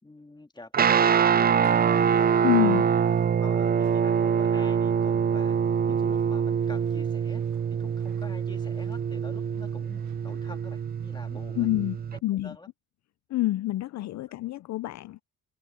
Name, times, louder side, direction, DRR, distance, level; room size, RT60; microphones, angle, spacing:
voice 1, 0.0-2.3 3.4-5.6 5.9-7.4 7.7-11.7 12.3-12.7, left 2 dB, 15° left, 2.3 m, -47 dB
Guitar, 0.7-12.2, right 7 dB, 30° right, 0.5 m, -24 dB
sound 1, 1.6-12.2, right 12 dB, 70° right, 1.3 m, -49 dB
voice 2, 2.4-2.8 11.6-12.0 12.2-12.6 13.3-15.2, left 16 dB, 65° left, 0.5 m, -27 dB
cardioid pair, 90°, 30 cm